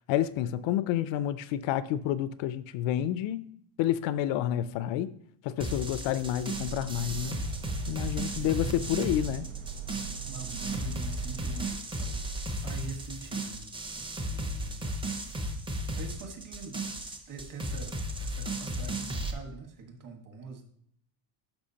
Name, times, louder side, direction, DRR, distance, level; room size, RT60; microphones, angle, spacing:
voice 1, 0.1-3.5 3.8-5.2 5.4-7.4 7.9-9.5, left 12 dB, 65° left, 0.5 m, -29 dB
sound 1, 5.6-19.3, right 1 dB, 10° right, 0.6 m, -35 dB
sound 2, 6.5-11.7, right 9 dB, 70° right, 0.8 m, -40 dB
voice 2, 8.3-8.7 10.3-14.9 16.0-16.8 17.0-20.6, right 4 dB, 40° right, 1.5 m, -45 dB
11.5 x 6.0 x 2.8 m
cardioid pair, 155°, 50 cm